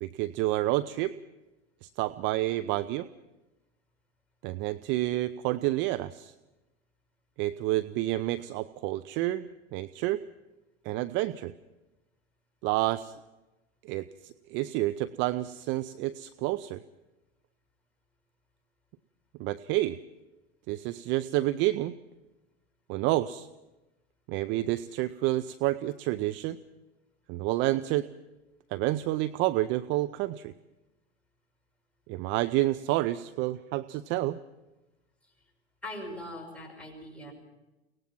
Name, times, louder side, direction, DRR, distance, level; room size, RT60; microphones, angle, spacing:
voice 1, 0.0-1.1 1.8-3.1 4.4-6.3 7.4-10.2 10.8-11.5 12.6-13.1 13.9-16.8 19.4-20.0 20.7-22.0 22.9-23.5 24.3-26.6 27.3-28.1 28.7-30.5 32.1-34.4, right 16 dB, 35° right, 13 dB, 0.6 m, -29 dB
voice 2, 35.8-37.3, left 1 dB, 5° left, -1 dB, 6.0 m, -41 dB
23.5 x 18.5 x 6.0 m, 1.0 s
hypercardioid pair, 100°, 32 cm